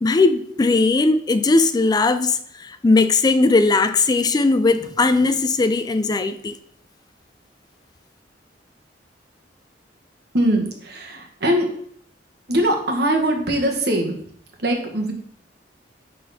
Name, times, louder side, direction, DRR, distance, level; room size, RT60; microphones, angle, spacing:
voice 1, 0.0-6.5, left 3 dB, 25° left, 0.4 m, -18 dB
voice 2, 10.3-11.7 12.5-14.1 14.6-15.1, right 1 dB, 65° right, 1.5 m, -21 dB
10.0 x 4.0 x 4.3 m
head